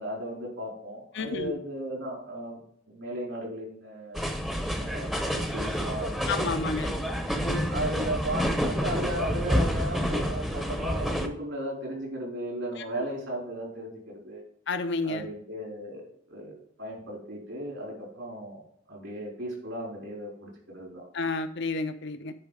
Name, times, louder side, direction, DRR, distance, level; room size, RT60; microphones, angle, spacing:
voice 1, 0.0-2.6 2.9-4.3 4.8-6.8 7.7-14.4 15.0-18.6 18.9-21.0, right 1 dB, 70° right, -1 dB, 4.2 m, -36 dB
voice 2, 1.1-1.5 6.3-7.0 7.4-7.7 14.7-15.3 21.1-22.3, left 3 dB, 60° left, 9 dB, 0.7 m, -30 dB
sound 1, 4.1-11.3, equal, ahead, 0.8 m, -29 dB
9.8 x 4.9 x 4.9 m, 0.62 s
head